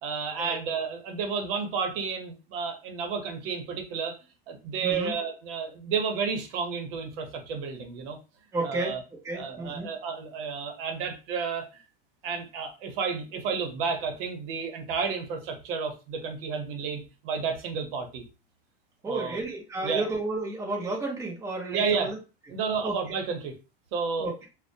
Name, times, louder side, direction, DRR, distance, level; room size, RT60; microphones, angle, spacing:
voice 1, 0.0-4.2 4.5-8.2 8.6-9.0 9.3-11.8 12.2-18.2 19.0-19.4 19.8-20.0 21.7-22.1 22.5-23.6 23.9-24.3, right 5 dB, 70° right, 5 dB, 0.8 m, -31 dB
voice 2, 4.8-5.1 8.5-8.9 9.2-9.9 19.0-22.2 22.8-23.2 24.2-24.5, right 2 dB, 10° right, -2 dB, 0.7 m, -32 dB
2.5 x 2.1 x 2.6 m, 0.32 s
supercardioid pair, 140°, 29 cm